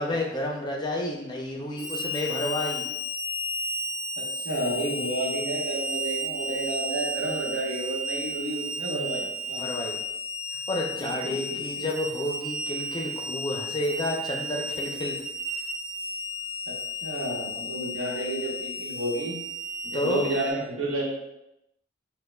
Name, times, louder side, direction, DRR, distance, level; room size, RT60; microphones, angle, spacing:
voice 1, 0.0-2.9 9.5-10.0 10.7-15.2 19.9-20.3, left 1 dB, 20° left, 0 dB, 0.5 m, -30 dB
Harmonica, 1.8-20.5, left 1 dB, 25° right, 1.1 m, -33 dB
voice 2, 4.2-9.7 11.0-11.9 16.7-16.8 17.0-19.4 19.8-21.0, right 1 dB, 85° right, -3 dB, 1.0 m, -31 dB
6.2 x 2.1 x 2.2 m, 0.88 s
head